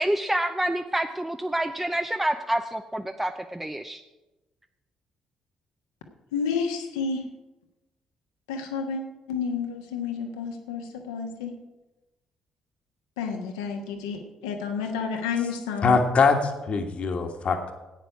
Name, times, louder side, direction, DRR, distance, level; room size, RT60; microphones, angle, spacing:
voice 1, 0.0-4.0, right 1 dB, 10° right, 6 dB, 0.6 m, -27 dB
voice 2, 6.3-7.2 8.5-9.0 9.3-11.6 13.2-16.0, left 5 dB, 75° left, 3 dB, 1.4 m, -30 dB
voice 3, 15.8-17.7, left 4 dB, 50° left, 5 dB, 1.6 m, -22 dB
14.5 x 9.2 x 4.9 m, 1.1 s
figure-of-eight pair, 45°, 3 cm